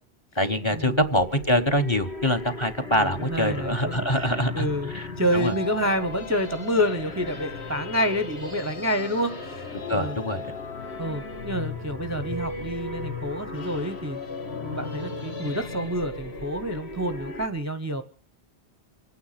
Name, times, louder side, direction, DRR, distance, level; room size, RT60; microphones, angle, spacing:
voice 1, 0.4-5.1 5.3-5.5 9.8-10.4, equal, 25° left, 10 dB, 1.0 m, -24 dB
sound 1, 0.6-17.5, left 3 dB, 70° left, 2.0 m, -36 dB
voice 2, 3.0-10.2 11.0-14.2 14.6-18.0, equal, 15° right, 9 dB, 0.7 m, -28 dB
26.0 x 9.4 x 5.7 m, 0.42 s
omnidirectional pair, 1.1 m